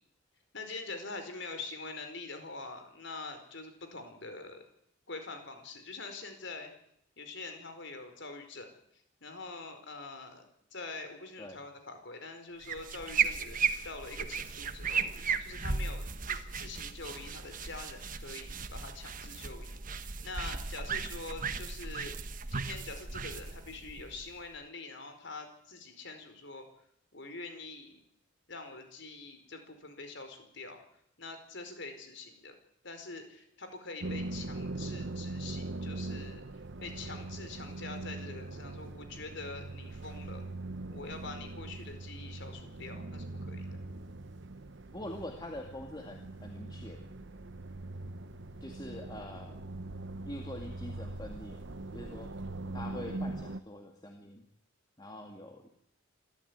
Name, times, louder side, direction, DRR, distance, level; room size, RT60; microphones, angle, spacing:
voice 1, 0.5-4.6 5.1-6.7 7.2-10.5 10.7-22.1 22.5-26.7 27.1-28.0 28.5-30.8 31.2-32.5 32.8-36.4 36.8-40.5 40.9-43.8, left 3 dB, 60° left, 7 dB, 4.8 m, -45 dB
sound 1, 12.6-24.6, right 5 dB, 40° right, 1.3 m, -36 dB
sound 2, 34.0-53.6, right 2 dB, 60° right, 0.9 m, -41 dB
voice 2, 44.9-47.0 48.6-49.7 50.3-52.3 52.7-54.4 55.0-55.8, left 1 dB, 20° left, 3 dB, 2.1 m, -44 dB
26.5 x 13.5 x 9.5 m, 0.73 s
head